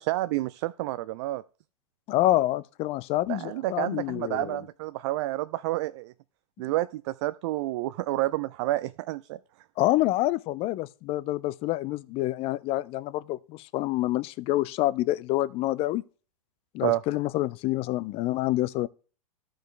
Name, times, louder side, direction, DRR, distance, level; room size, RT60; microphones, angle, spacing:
voice 1, 0.0-1.4 3.3-6.1 6.6-9.4 16.8-17.0, right 17 dB, 45° right, 0.4 m, -29 dB
voice 2, 2.1-4.6 9.8-16.0 16.7-18.9, left 16 dB, 30° left, 0.4 m, -27 dB
13.5 x 5.1 x 3.4 m
figure-of-eight pair, 100°, 20 cm